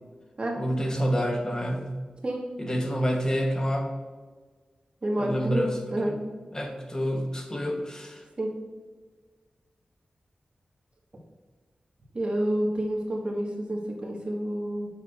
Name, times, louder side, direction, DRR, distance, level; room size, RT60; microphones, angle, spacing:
voice 1, 0.6-2.1 2.6-3.9 5.2-6.2 6.5-8.2, equal, 25° left, 2 dB, 1.2 m, -28 dB
voice 2, 5.0-6.1 8.4-8.5 12.1-14.9, right 1 dB, 40° right, -2 dB, 1.8 m, -29 dB
7.3 x 6.7 x 2.6 m, 1.4 s
wide cardioid pair, 85°, 3 cm